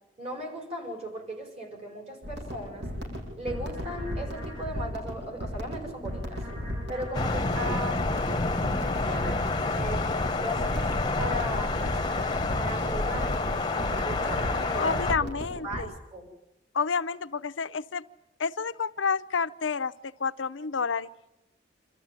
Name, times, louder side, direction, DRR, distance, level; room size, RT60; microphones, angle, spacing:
voice 1, 0.2-2.9 3.4-6.4 6.9-10.1 10.4-11.8 12.5-15.3 15.6-16.3, equal, 35° right, 4 dB, 5.5 m, -37 dB
sound 1, 2.2-15.8, equal, 65° right, 7.5 m, -36 dB
Thunder, 7.1-15.1, left 3 dB, 25° left, 1.1 m, -28 dB
voice 2, 14.7-15.9 16.7-18.0 18.4-19.9 20.2-21.1, left 5 dB, 80° left, 12 dB, 0.8 m, -29 dB
27.5 x 14.0 x 9.6 m, 0.90 s
head